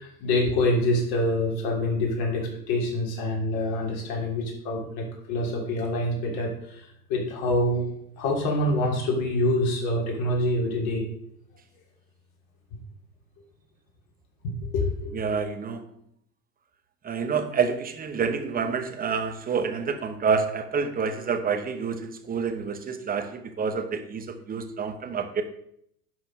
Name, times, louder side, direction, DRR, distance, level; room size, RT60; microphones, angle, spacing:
voice 1, 0.0-7.9 8.2-11.1 14.7-15.2, left 1 dB, 50° left, -2 dB, 3.3 m, -26 dB
voice 2, 15.1-15.8 17.0-25.4, right 5 dB, 20° right, 7 dB, 1.1 m, -28 dB
11.0 x 4.2 x 5.3 m, 0.72 s
hypercardioid pair, 100°, 48 cm